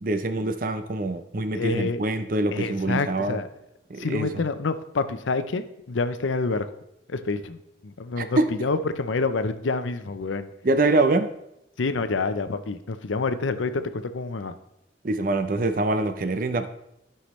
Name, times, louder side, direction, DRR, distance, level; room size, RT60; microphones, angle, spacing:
voice 1, 0.0-3.4 3.9-4.4 8.2-8.5 10.6-11.3 15.0-16.7, right 2 dB, 45° right, 9 dB, 0.6 m, -24 dB
voice 2, 1.5-2.0 2.5-3.5 4.0-6.7 7.1-7.6 7.8-10.5 11.8-14.5, left 3 dB, 85° left, 11 dB, 0.6 m, -27 dB
13.5 x 5.7 x 3.1 m, 0.82 s
head